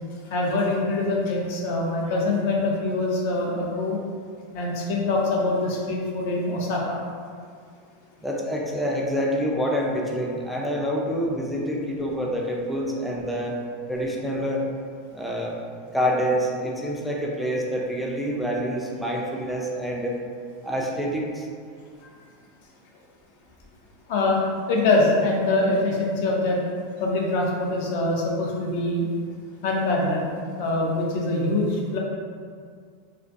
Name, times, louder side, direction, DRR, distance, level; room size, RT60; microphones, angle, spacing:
voice 1, 0.3-4.0 4.5-7.0 22.0-22.1 24.1-24.4 24.7-26.6 27.0-29.1 29.6-30.3 30.6-32.0, left 2 dB, 60° left, -2 dB, 0.5 m, -24 dB
voice 2, 8.2-13.6 13.9-14.7 15.1-15.6 15.9-20.2 20.6-21.5, equal, ahead, -2 dB, 0.3 m, -27 dB
2.3 x 2.2 x 2.5 m, 2.1 s
supercardioid pair, 150°, 0 cm